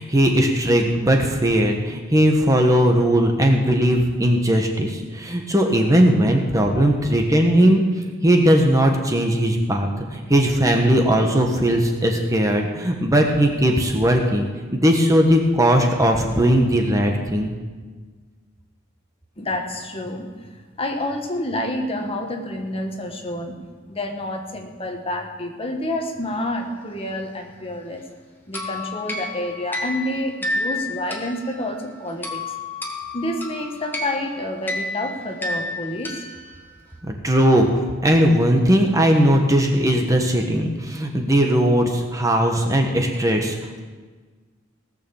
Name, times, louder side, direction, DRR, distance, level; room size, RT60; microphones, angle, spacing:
voice 1, 0.0-7.8 8.2-14.5 14.7-17.5 37.1-43.6, equal, 15° right, 2 dB, 1.2 m, -18 dB
voice 2, 19.4-20.3 20.8-23.6 23.9-28.0 28.5-32.4 33.1-36.1, left 1 dB, 30° left, 3 dB, 1.4 m, -28 dB
sound 1, 28.5-36.9, left 2 dB, 10° left, 1.6 m, -31 dB
18.0 x 6.8 x 7.1 m, 1.4 s
head